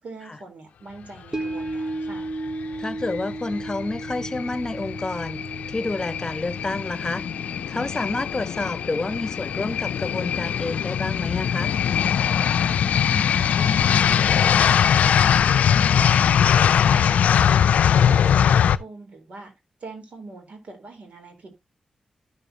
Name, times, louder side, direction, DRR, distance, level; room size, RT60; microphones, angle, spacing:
voice 1, 0.0-2.3 12.6-16.5 16.8-19.5 19.8-21.6, right 3 dB, 70° right, 4.0 m, -42 dB
sound 1, 1.3-11.7 12.1-12.2, right 2 dB, 25° right, 0.7 m, -36 dB
voice 2, 2.8-5.4 5.7-7.2 7.7-11.7, left 2 dB, 30° left, 1.1 m, -29 dB
sound 2, 3.0-18.8, left 8 dB, 90° left, 0.4 m, -21 dB
11.5 x 6.7 x 2.8 m
cardioid pair, 65°, 2 cm